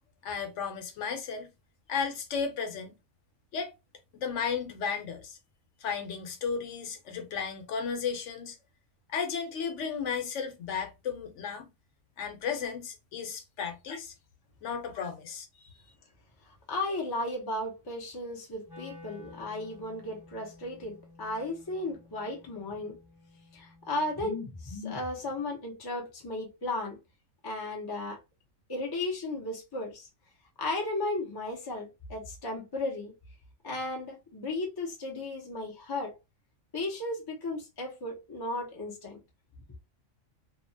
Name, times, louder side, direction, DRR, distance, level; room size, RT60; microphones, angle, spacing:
voice 1, 0.2-1.5 1.9-2.9 3.5-3.7 4.1-5.4 5.8-8.6 9.1-11.7 12.2-14.1 14.6-15.5, left 6 dB, 65° left, 1.0 m, -34 dB
voice 2, 16.7-23.0 23.5-27.0 27.4-28.2 28.7-30.1 30.6-33.1 33.6-36.1 36.7-39.2, left 2 dB, 30° left, 0.4 m, -35 dB
Wind instrument woodwind instrument, 18.6-24.7, left 2 dB, ahead, 1.0 m, -53 dB
2.8 x 2.2 x 2.6 m
omnidirectional pair, 1.4 m